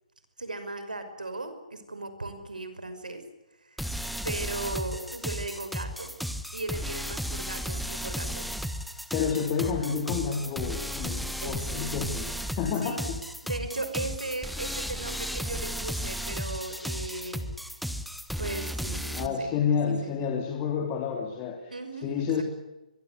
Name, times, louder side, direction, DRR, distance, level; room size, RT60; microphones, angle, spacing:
voice 1, 0.4-3.2 3.6-3.8 4.2-6.1 6.5-8.5 11.4-11.9 12.8-13.0 13.4-17.4 18.4-20.3 21.7-22.4, right 2 dB, 90° right, 9 dB, 5.6 m, -37 dB
sound 1, 3.8-19.3, equal, ahead, 1.3 m, -34 dB
voice 2, 9.1-12.3 12.6-13.0 19.1-21.7 22.0-22.4, left 6 dB, 30° left, 2 dB, 3.3 m, -29 dB
24.0 x 22.0 x 8.2 m, 0.99 s
figure-of-eight pair, 135°, 4 cm